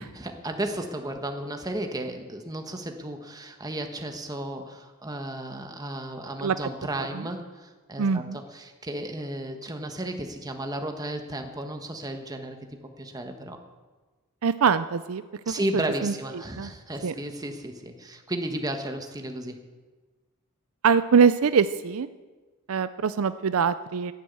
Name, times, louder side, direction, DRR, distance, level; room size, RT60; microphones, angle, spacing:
voice 1, 0.0-13.6 15.5-19.6, right 1 dB, 15° right, 5 dB, 1.4 m, -34 dB
voice 2, 8.0-8.4 14.4-15.2 15.7-16.7 17.0-17.1 20.8-22.1 22.7-24.1, right 6 dB, 70° right, 13 dB, 0.5 m, -23 dB
11.5 x 11.0 x 8.7 m, 1.3 s
head